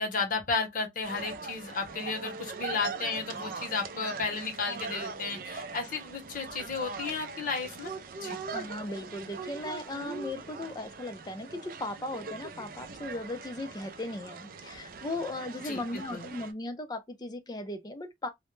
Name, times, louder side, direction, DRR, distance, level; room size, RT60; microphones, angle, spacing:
voice 1, 0.0-8.4 15.6-16.3, left 4 dB, 50° left, 0.8 m, -33 dB
sound 1, 1.0-16.5, right 4 dB, 50° right, 0.4 m, -41 dB
voice 2, 8.5-18.3, left 2 dB, 25° left, 0.4 m, -37 dB
2.1 x 2.1 x 3.0 m
head